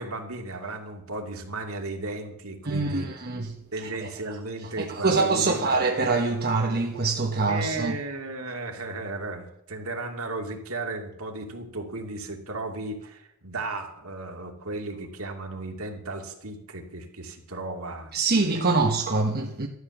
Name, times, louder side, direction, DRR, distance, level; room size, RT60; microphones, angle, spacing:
voice 1, 0.0-3.1 3.7-5.6 7.5-18.1, right 2 dB, 65° right, 2.7 m, -35 dB
voice 2, 2.6-3.6 3.8-4.1 4.6-8.0 18.1-19.7, right 3 dB, 45° right, 1.2 m, -25 dB
13.5 x 13.0 x 7.2 m
head